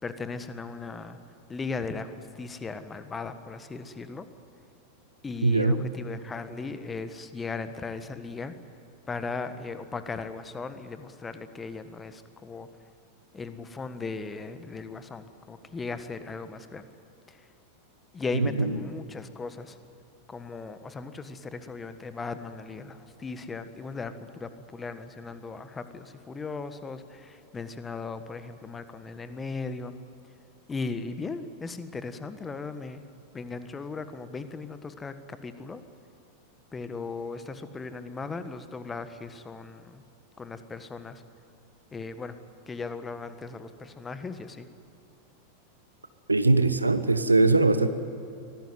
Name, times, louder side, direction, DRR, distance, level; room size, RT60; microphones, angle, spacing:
voice 1, 0.0-1.2 1.5-4.3 5.2-8.5 9.1-12.7 13.3-16.9 17.3-17.5 18.1-19.8 20.3-29.9 30.7-33.0 33.3-35.8 36.7-40.0 40.4-41.2 41.9-42.4 42.7-44.7, left 4 dB, 15° left, 11 dB, 1.5 m, -37 dB
voice 2, 5.4-5.8 18.3-18.8 46.3-47.9, right 2 dB, 80° right, 11 dB, 1.2 m, -21 dB
24.0 x 18.0 x 9.4 m, 2.9 s
figure-of-eight pair, 90°, 0 cm